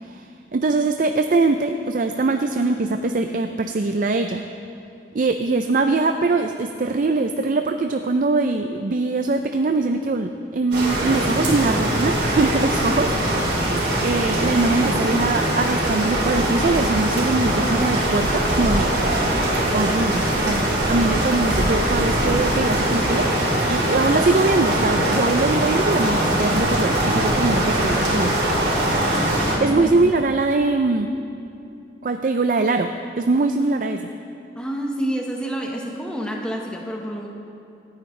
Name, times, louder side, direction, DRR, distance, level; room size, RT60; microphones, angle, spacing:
voice 1, 0.0-4.4 5.1-13.6 14.0-23.3 23.7-28.4 29.6-31.1 32.0-34.1, right 3 dB, 45° right, 7 dB, 0.4 m, -22 dB
sound 1, 10.7-29.6, right 1 dB, 65° right, 3.4 m, -21 dB
voice 2, 29.4-29.9 34.5-37.3, equal, 5° left, -1 dB, 1.2 m, -28 dB
26.0 x 9.5 x 3.3 m, 2.6 s
head